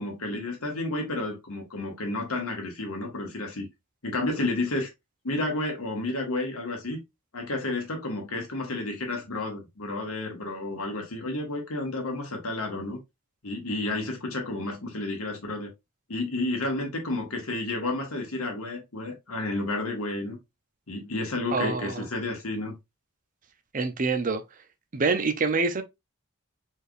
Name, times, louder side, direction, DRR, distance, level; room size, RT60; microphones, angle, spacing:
voice 1, 0.0-3.7 4.0-4.9 5.2-7.0 7.3-13.0 13.4-15.7 16.1-20.4 20.9-22.8, left 2 dB, 80° left, 1.6 m, -31 dB
voice 2, 21.5-22.0 23.7-24.4 24.9-25.8, right 4 dB, 40° right, 0.6 m, -26 dB
4.4 x 3.4 x 2.5 m
head